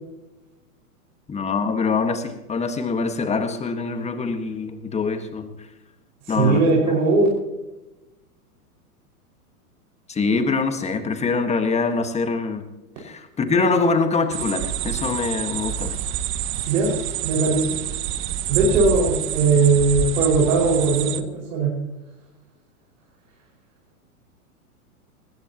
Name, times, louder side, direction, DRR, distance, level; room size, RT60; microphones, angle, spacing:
voice 1, 1.3-5.5 6.3-6.6 10.1-12.6 13.0-16.0, left 4 dB, 15° left, 8 dB, 1.6 m, -24 dB
voice 2, 6.4-7.3 16.7-16.9 17.2-17.7 18.5-21.7, right 3 dB, 65° right, -3 dB, 5.5 m, -19 dB
sound 1, 14.3-21.2, right 11 dB, 25° right, 0.8 m, -27 dB
20.0 x 16.0 x 2.9 m, 1.0 s
hypercardioid pair, 120°, 45 cm